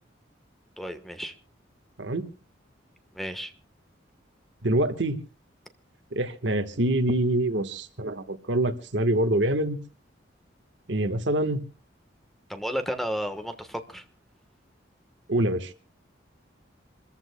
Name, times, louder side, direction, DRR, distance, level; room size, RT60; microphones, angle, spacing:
voice 1, 0.8-1.3 3.1-3.5 12.5-14.0, equal, ahead, 8 dB, 1.2 m, -32 dB
voice 2, 4.6-5.2 6.1-9.8 10.9-11.6 15.3-15.7, right 1 dB, 70° right, 8 dB, 1.4 m, -25 dB
27.0 x 14.5 x 2.2 m, 0.34 s
head